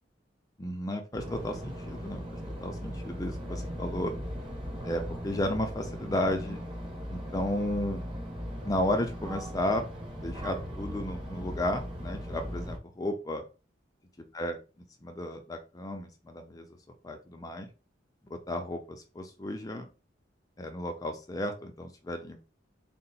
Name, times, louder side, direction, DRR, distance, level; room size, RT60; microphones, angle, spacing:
voice 1, 0.6-4.1 4.8-6.6 7.1-8.0 8.6-9.9 10.2-13.4 14.3-14.6 15.0-16.7 17.0-17.7 18.3-19.9 20.6-22.4, left 1 dB, 20° left, 5 dB, 0.4 m, -33 dB
sound 1, 1.1-12.8, equal, 30° right, 0.9 m, -38 dB
3.8 x 2.0 x 4.1 m, 0.32 s
head